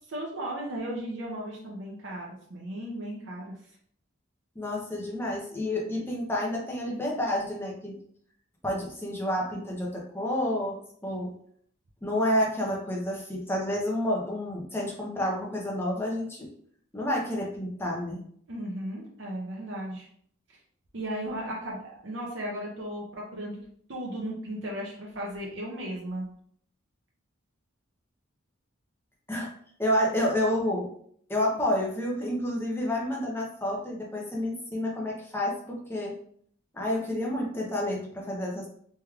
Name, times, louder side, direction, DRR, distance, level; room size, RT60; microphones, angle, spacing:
voice 1, 0.1-3.6 18.5-20.1 20.9-23.6 23.9-26.3, right 1 dB, 60° right, -3 dB, 0.6 m, -35 dB
voice 2, 4.6-7.9 8.6-11.3 12.0-16.5 16.9-18.2 29.3-29.5 29.8-30.9 31.3-36.1 36.7-38.7, left 1 dB, 10° left, -3 dB, 0.6 m, -29 dB
3.3 x 3.1 x 2.3 m, 0.62 s
head